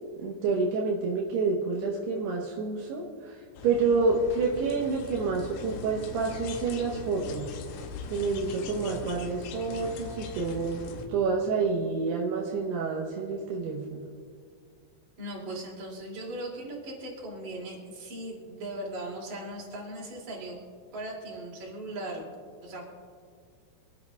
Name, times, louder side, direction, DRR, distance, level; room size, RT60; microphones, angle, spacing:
voice 1, 0.2-7.5 8.1-10.8 11.1-14.1, right 4 dB, 75° right, -2 dB, 2.5 m, -28 dB
sound 1, 3.6-11.1, left 4 dB, 90° left, 3.6 m, -41 dB
voice 2, 15.2-20.6 20.9-22.2 22.6-22.9, right 1 dB, 40° right, -3 dB, 3.4 m, -38 dB
27.0 x 10.5 x 2.4 m, 2.1 s
omnidirectional pair, 6.0 m